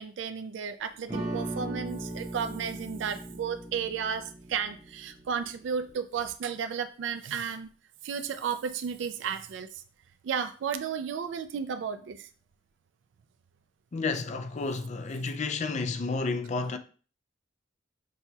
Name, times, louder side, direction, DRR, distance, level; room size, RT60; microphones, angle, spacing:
voice 1, 0.0-7.7 8.0-9.7 10.2-12.2, right 7 dB, 85° right, 0.3 m, -33 dB
Bass guitar, 1.1-5.2, right 1 dB, 5° right, 0.6 m, -39 dB
sound 1, 1.1-5.9, right 2 dB, 40° right, 1.0 m, -44 dB
voice 2, 13.9-16.8, left 3 dB, 40° left, 0.4 m, -31 dB
6.1 x 2.3 x 2.7 m
head